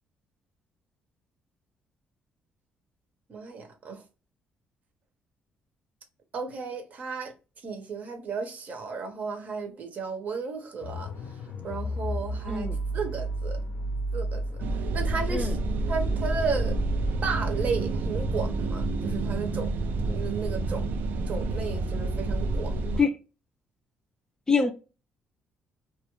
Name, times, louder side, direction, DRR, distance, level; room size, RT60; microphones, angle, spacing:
voice 1, 3.3-4.0 6.3-7.3 7.6-12.7 12.9-13.6 14.1-15.6 15.9-16.8 17.2-19.8 20.1-20.8 21.3-22.7, right 4 dB, 50° right, 0.7 m, -34 dB
sound 1, 10.8-17.8, right 1 dB, 75° left, 0.5 m, -32 dB
voice 2, 12.5-12.8 15.3-15.5 23.0-23.1 24.5-24.7, left 5 dB, 20° left, 0.3 m, -24 dB
sound 2, 14.6-23.0, right 2 dB, 70° right, 0.4 m, -29 dB
2.3 x 2.0 x 2.9 m
cardioid pair, 115°, 3 cm